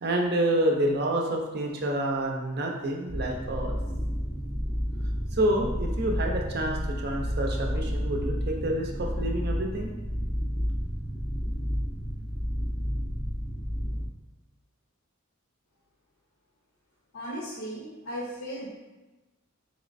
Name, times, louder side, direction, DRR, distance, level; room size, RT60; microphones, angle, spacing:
voice 1, 0.0-3.8 5.3-9.9, right 1 dB, 50° right, 1 dB, 0.6 m, -28 dB
sound 1, 3.1-14.1, equal, ahead, 0.4 m, -31 dB
voice 2, 17.1-18.7, equal, 70° left, -5 dB, 0.7 m, -36 dB
4.1 x 3.1 x 2.5 m, 1.1 s
head